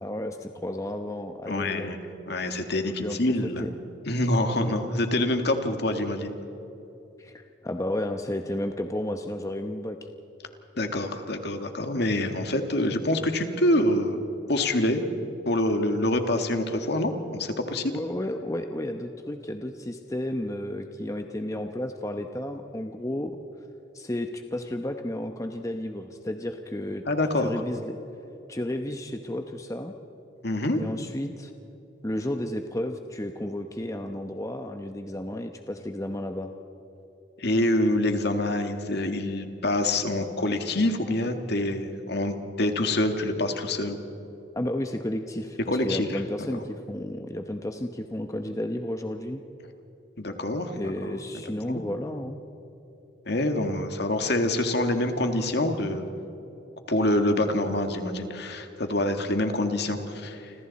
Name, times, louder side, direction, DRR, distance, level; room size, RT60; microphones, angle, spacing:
voice 1, 0.0-2.0 2.7-3.2 3.6-3.7 7.2-10.0 17.9-23.3 23.9-27.0 27.4-28.0 28.5-29.9 30.8-31.5 32.0-36.5 44.5-49.4 50.7-52.5, left 1 dB, 15° left, 5 dB, 0.9 m, -32 dB
voice 2, 1.5-2.0 2.3-3.6 4.1-6.3 10.8-15.0 15.5-17.9 27.1-27.5 30.4-30.8 37.4-44.0 45.7-46.1 46.4-46.5 50.2-50.8 51.7-51.8 53.3-56.1 56.9-60.5, left 1 dB, 60° left, 5 dB, 2.0 m, -26 dB
29.5 x 26.0 x 4.2 m, 3.0 s
head